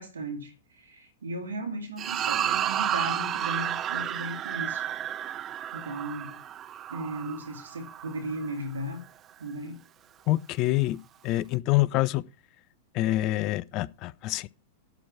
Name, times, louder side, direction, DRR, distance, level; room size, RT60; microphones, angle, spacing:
voice 1, 0.0-4.9 5.7-6.4 6.9-9.0 9.4-9.8, right 1 dB, 80° right, 2.5 m, -36 dB
sound 1, 2.0-8.5, right 10 dB, 30° right, 0.5 m, -31 dB
voice 2, 10.3-11.0 11.2-12.2 12.9-14.5, left 17 dB, 45° left, 0.5 m, -26 dB
11.5 x 4.6 x 6.1 m
figure-of-eight pair, 95°, 0 cm